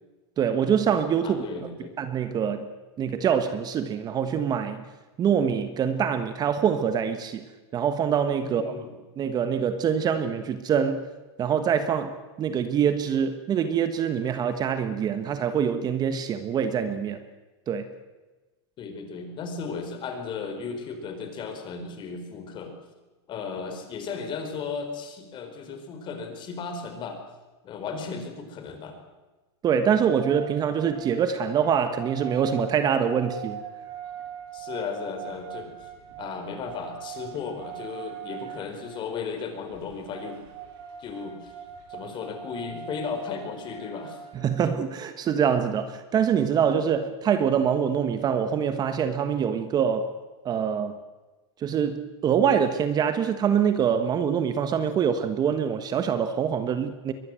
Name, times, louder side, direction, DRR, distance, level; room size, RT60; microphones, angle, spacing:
voice 1, 0.4-1.7 2.0-2.7 3.0-4.8 5.2-7.5 7.7-8.7 9.2-11.0 11.4-17.2 17.7-17.9 29.6-33.6 44.3-50.1 50.4-51.0 51.6-57.1, right 7 dB, 30° right, 1.3 m, -25 dB
voice 2, 1.2-1.9 8.4-9.0 18.8-22.7 23.3-27.2 27.6-29.0 34.5-35.9 36.2-40.4 41.0-41.5 41.9-44.2, left 5 dB, 35° left, 4.4 m, -35 dB
sound 1, 30.2-44.6, right 9 dB, 60° right, 6.2 m, -41 dB
23.0 x 19.5 x 7.7 m
supercardioid pair, 135°, 14 cm